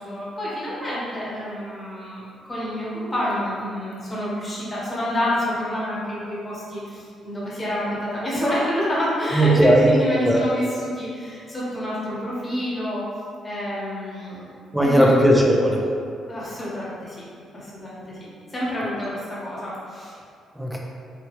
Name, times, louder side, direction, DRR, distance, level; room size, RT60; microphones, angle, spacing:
voice 1, 0.0-13.0 13.4-14.4 14.8-15.2 16.3-17.2 17.5-18.2 18.5-20.1, left 1 dB, 20° left, -8 dB, 1.0 m, -28 dB
voice 2, 9.3-9.9 10.3-10.4 14.7-15.8 20.6-20.8, right 1 dB, 5° right, -1 dB, 0.5 m, -17 dB
2.9 x 2.3 x 2.9 m, 2.3 s
cardioid pair, 90°, 0 cm